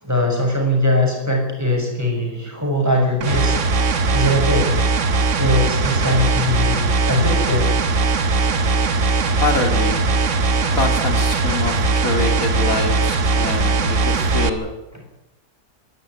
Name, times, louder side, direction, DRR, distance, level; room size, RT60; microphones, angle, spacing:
voice 1, 0.0-3.6 4.1-4.7 5.4-7.8, left 1 dB, 10° right, 1 dB, 6.5 m, -20 dB
sound 1, 3.2-14.5, right 3 dB, 55° right, 1.6 m, -19 dB
voice 2, 9.4-10.0 10.7-14.7, left 3 dB, 60° left, 5 dB, 2.8 m, -24 dB
23.5 x 13.5 x 9.5 m, 0.93 s
omnidirectional pair, 1.6 m